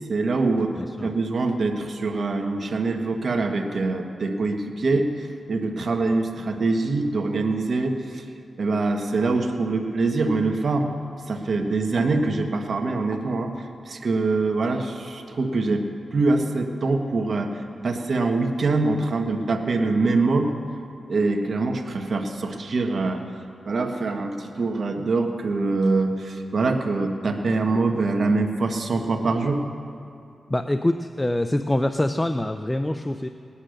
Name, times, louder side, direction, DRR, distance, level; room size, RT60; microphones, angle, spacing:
voice 1, 0.0-0.7 1.0-8.2 8.6-10.9 11.3-20.5 21.1-23.2 23.7-29.6, right 3 dB, 60° right, 3 dB, 1.4 m, -24 dB
voice 2, 0.8-1.1 30.5-33.3, left 1 dB, 15° left, 9 dB, 0.5 m, -25 dB
18.5 x 10.0 x 6.5 m, 2.5 s
cardioid pair, 80°, 0 cm